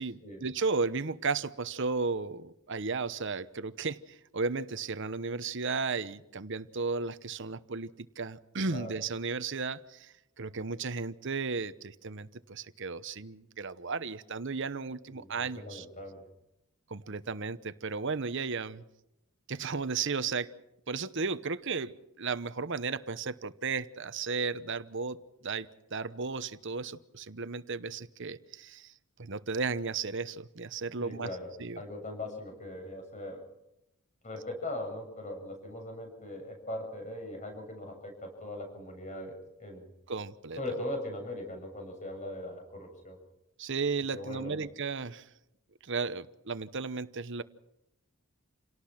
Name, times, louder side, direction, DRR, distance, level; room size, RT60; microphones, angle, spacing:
voice 1, 0.0-15.8 16.9-18.8 19.5-20.5 20.9-25.2 25.4-28.9 29.2-31.3 31.6-31.8 40.1-40.6 43.6-45.3 45.8-47.4, right 4 dB, 55° right, 13 dB, 1.0 m, -34 dB
voice 2, 8.7-9.0 15.1-16.2 31.0-31.5 31.8-33.4 34.2-39.9 40.6-43.2 44.1-44.6, left 1 dB, 35° left, 4 dB, 7.5 m, -40 dB
28.5 x 18.5 x 5.9 m, 0.85 s
head